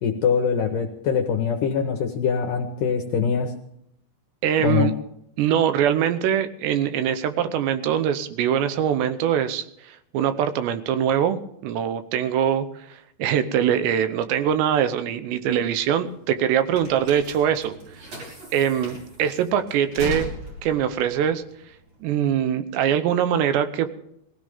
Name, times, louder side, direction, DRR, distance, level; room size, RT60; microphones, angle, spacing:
voice 1, 0.0-3.5 4.6-4.9, left 6 dB, 70° left, 5 dB, 2.1 m, -23 dB
voice 2, 4.4-4.9 5.4-12.7 13.2-17.7 18.5-20.4 20.6-21.4 22.0-23.9, right 9 dB, 80° right, 11 dB, 3.0 m, -23 dB
sound 1, 15.5-22.3, equal, 40° right, 6.0 m, -37 dB
21.5 x 16.0 x 3.6 m, 0.75 s
omnidirectional pair, 5.0 m